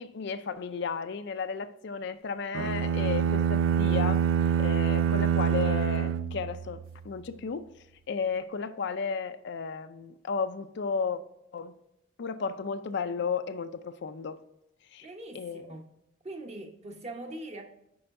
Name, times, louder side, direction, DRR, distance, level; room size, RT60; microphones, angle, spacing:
voice 1, 0.0-4.3 4.6-7.6 8.1-11.2 11.5-11.7 12.2-14.4 14.9-15.1 15.3-15.8, left 5 dB, 60° left, 0.4 m, -33 dB
sound 1, 2.5-6.9, right 8 dB, 80° right, 0.3 m, -26 dB
voice 2, 15.0-15.9 16.2-17.6, right 1 dB, 35° right, 0.9 m, -42 dB
8.6 x 5.5 x 2.6 m
head